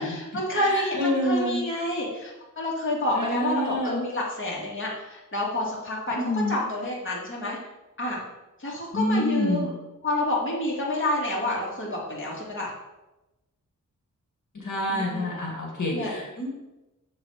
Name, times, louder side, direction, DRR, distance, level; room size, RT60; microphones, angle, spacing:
voice 1, 0.0-7.6 8.0-8.2 8.6-9.7 10.0-12.7 14.9-15.4 15.9-16.2, left 1 dB, 40° left, -4 dB, 2.4 m, -29 dB
voice 2, 0.5-1.6 3.1-4.0 6.1-6.5 8.9-9.6 14.6-16.5, left 1 dB, 65° left, -2 dB, 2.2 m, -27 dB
7.3 x 4.8 x 5.7 m, 1.0 s
wide cardioid pair, 110°, 32 cm